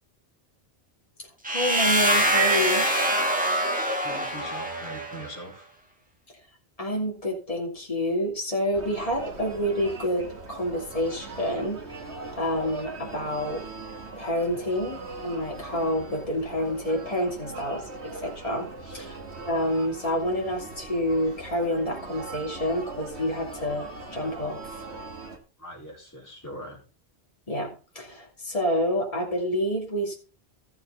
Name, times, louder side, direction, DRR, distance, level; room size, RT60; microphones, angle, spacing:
sound 1, 1.4-5.3, right 1 dB, 5° right, 1.7 m, -24 dB
voice 1, 1.5-2.9 6.8-12.0 12.4-13.6 14.2-19.2 19.4-24.8 27.5-30.2, equal, 35° left, -3 dB, 3.0 m, -28 dB
voice 2, 3.8-5.7 18.7-19.1 25.6-26.8, equal, 15° left, -4 dB, 4.4 m, -42 dB
sound 2, 8.7-25.4, right 3 dB, 80° right, 2.0 m, -40 dB
14.0 x 7.0 x 3.9 m, 0.35 s
omnidirectional pair, 1.1 m